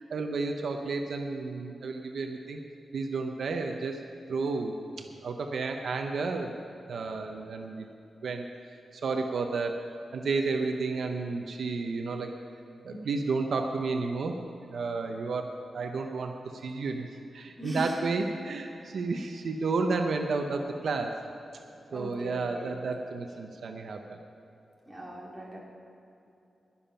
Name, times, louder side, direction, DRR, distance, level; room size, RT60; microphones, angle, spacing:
voice 1, 0.0-2.6 2.9-4.0 4.3-4.8 5.2-6.6 6.9-7.9 8.2-8.5 8.9-9.8 10.1-12.3 12.8-17.1 17.3-21.1 21.9-24.2, right 4 dB, 65° right, 4 dB, 0.8 m, -31 dB
voice 2, 17.6-17.9 21.9-22.8 24.9-25.6, equal, 5° right, -4 dB, 2.4 m, -38 dB
20.5 x 7.2 x 5.6 m, 2.8 s
wide cardioid pair, 170°, 0 cm